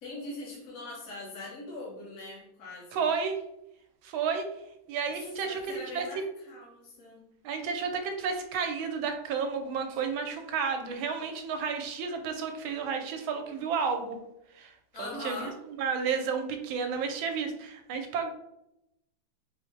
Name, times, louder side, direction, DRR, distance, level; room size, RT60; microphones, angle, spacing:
voice 1, 0.0-3.1 5.1-7.2 14.9-15.6, left 2 dB, 50° left, -5 dB, 1.2 m, -42 dB
voice 2, 2.9-3.4 4.0-4.4 4.9-6.0 7.4-14.2 14.5-14.7 15.0-15.5 15.8-18.3, right 5 dB, 90° right, 5 dB, 1.4 m, -31 dB
4.5 x 2.1 x 3.1 m, 0.82 s
omnidirectional pair, 2.1 m